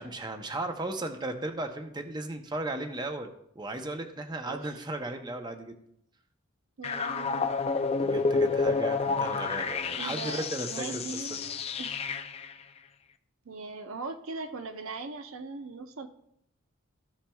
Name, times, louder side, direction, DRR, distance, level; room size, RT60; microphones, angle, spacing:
voice 1, 0.0-5.8 7.9-11.5, right 2 dB, 20° right, 5 dB, 0.7 m, -36 dB
sound 1, 6.8-12.5, left 4 dB, 30° left, 0.4 m, -29 dB
voice 2, 6.8-7.5 9.9-12.1 13.4-16.1, right 3 dB, 85° right, 7 dB, 0.7 m, -40 dB
14.0 x 7.2 x 2.3 m, 0.73 s
head